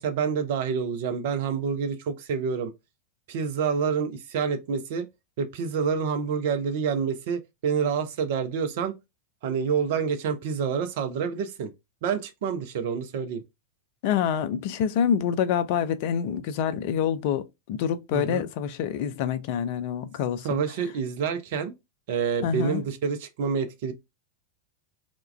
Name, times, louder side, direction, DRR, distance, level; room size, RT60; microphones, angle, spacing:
voice 1, 0.0-2.7 3.3-5.1 5.4-8.9 9.4-11.7 12.0-13.4 18.1-18.4 20.4-21.7 22.1-23.9, right 6 dB, 50° right, 0.4 m, -28 dB
voice 2, 14.0-20.6 22.4-22.8, left 8 dB, 45° left, 0.3 m, -26 dB
2.2 x 2.1 x 3.1 m
figure-of-eight pair, 90°, 0 cm